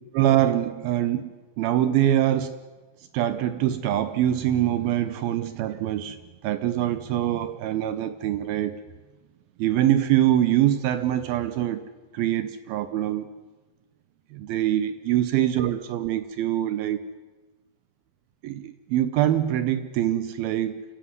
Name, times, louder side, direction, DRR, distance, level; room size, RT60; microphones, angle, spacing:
voice 1, 0.1-2.6 3.1-6.2 6.4-8.8 9.6-11.9 12.1-13.3 14.3-17.0 18.4-20.8, right 12 dB, 75° right, 12 dB, 2.4 m, -24 dB
27.5 x 14.5 x 9.6 m, 1.3 s
omnidirectional pair, 5.0 m